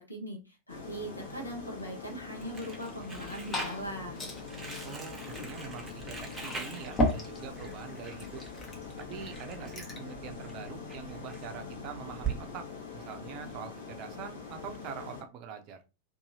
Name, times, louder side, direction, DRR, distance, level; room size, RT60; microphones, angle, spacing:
voice 1, 0.0-4.2, right 1 dB, 85° left, 1 dB, 0.8 m, -40 dB
sound 1, 0.7-15.2, left 5 dB, 60° left, 1.1 m, -44 dB
Crumpling crinkling, 2.4-12.4, right 6 dB, 15° right, 0.8 m, -43 dB
Glass / Fill (with liquid), 3.0-10.1, left 1 dB, 25° left, 0.9 m, -37 dB
voice 2, 4.8-8.4 9.0-12.7 12.9-15.8, right 7 dB, 40° right, 6 dB, 0.5 m, -44 dB
2.6 x 2.6 x 2.8 m, 0.30 s
figure-of-eight pair, 90°, 0 cm